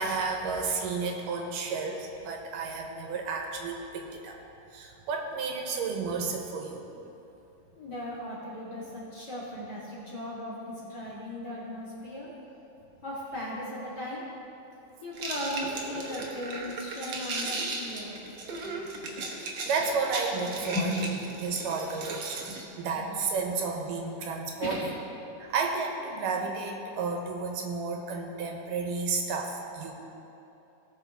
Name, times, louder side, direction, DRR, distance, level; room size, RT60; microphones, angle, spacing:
voice 1, 0.0-4.4 4.7-6.8 19.3-21.1 21.4-24.9 25.4-29.9, right 4 dB, 85° right, 2 dB, 2.6 m, -32 dB
voice 2, 7.7-12.3 13.0-14.2 15.0-18.2 18.6-19.1 20.7-20.9 22.5-22.6 24.6-24.9, left 1 dB, 35° left, -8 dB, 2.1 m, -37 dB
sound 1, 15.2-22.6, right 3 dB, 60° right, 1.6 m, -36 dB
18.0 x 6.6 x 3.5 m, 2.9 s
omnidirectional pair, 3.7 m